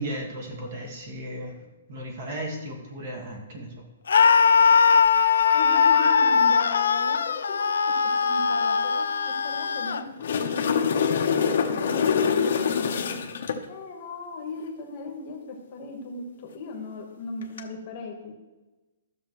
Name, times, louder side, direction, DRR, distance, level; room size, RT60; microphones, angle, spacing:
voice 1, 0.0-1.6 1.9-3.8, right 1 dB, 35° right, 1 dB, 1.6 m, -35 dB
Screaming, 4.1-10.0, left 6 dB, 90° left, 0.5 m, -20 dB
voice 2, 5.5-7.9 8.2-13.2 13.7-18.3, left 3 dB, 30° left, 2 dB, 1.2 m, -37 dB
sound 1, 10.0-13.6 17.4-17.6, left 6 dB, 55° left, 0.9 m, -24 dB
13.0 x 6.6 x 3.1 m, 1.1 s
hypercardioid pair, 175°, 0 cm